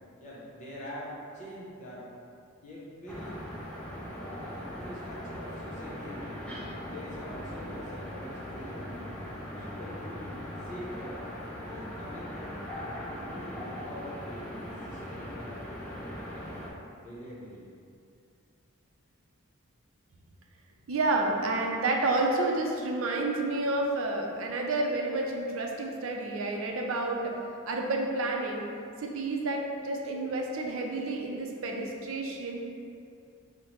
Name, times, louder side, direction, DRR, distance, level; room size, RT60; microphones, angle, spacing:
voice 1, 0.2-2.1 2.6-3.4 4.1-9.1 9.5-11.2 11.6-15.5 16.1-16.7 17.0-17.7, equal, 35° left, -6 dB, 0.9 m, -44 dB
sound 1, 3.1-16.7, equal, 5° left, 0.4 m, -40 dB
voice 2, 20.9-27.3 27.7-28.7 29.0-32.6, right 2 dB, 70° right, 0 dB, 0.5 m, -30 dB
5.5 x 2.1 x 3.1 m, 2.4 s
head